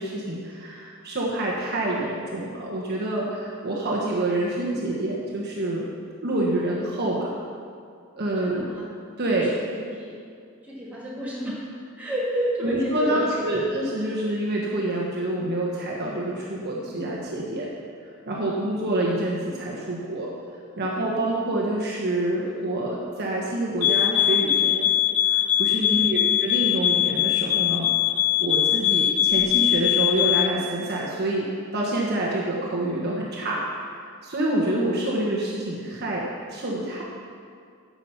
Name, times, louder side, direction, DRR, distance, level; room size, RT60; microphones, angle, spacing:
voice 1, 0.0-5.8 6.2-7.3 8.1-8.7 9.2-9.5 12.6-17.7 18.3-20.3 20.8-24.9 25.2-27.9 28.4-31.5 31.7-33.6 34.2-37.0, right 1 dB, 50° right, -4 dB, 1.3 m, -27 dB
voice 2, 8.4-8.9 9.3-10.1 10.6-11.6 12.0-13.7 25.9-26.4, equal, 5° right, -8 dB, 2.7 m, -31 dB
sound 1, 23.8-30.6, left 12 dB, 70° left, 0.5 m, -21 dB
9.8 x 7.2 x 5.8 m, 2.3 s
head